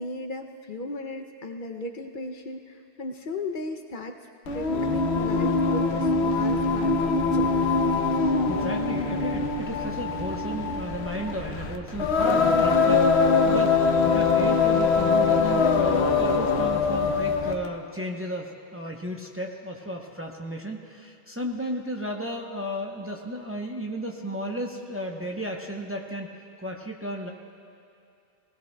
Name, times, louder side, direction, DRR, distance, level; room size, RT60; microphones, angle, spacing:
voice 1, 0.0-4.2 4.5-7.7, left 2 dB, 55° left, 5 dB, 0.8 m, -36 dB
Singing, 4.5-17.7, left 4 dB, 90° left, 1.0 m, -23 dB
voice 2, 8.2-26.3 26.6-27.3, equal, 15° right, 1 dB, 0.7 m, -34 dB
19.5 x 18.5 x 2.2 m, 2.6 s
omnidirectional pair, 1.1 m